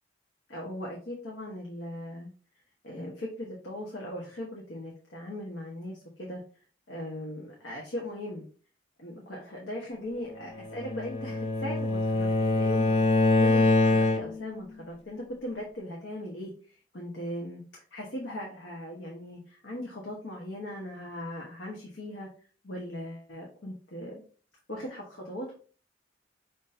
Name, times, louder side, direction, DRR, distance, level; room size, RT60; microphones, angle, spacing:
voice 1, 0.5-2.3 2.8-6.4 6.9-8.5 9.0-17.6 17.9-22.3 22.6-24.2 24.7-25.5, left 1 dB, 75° left, -2 dB, 1.0 m, -39 dB
Bowed string instrument, 10.6-14.5, left 3 dB, 35° left, 0.6 m, -24 dB
6.1 x 2.7 x 2.6 m, 0.40 s
head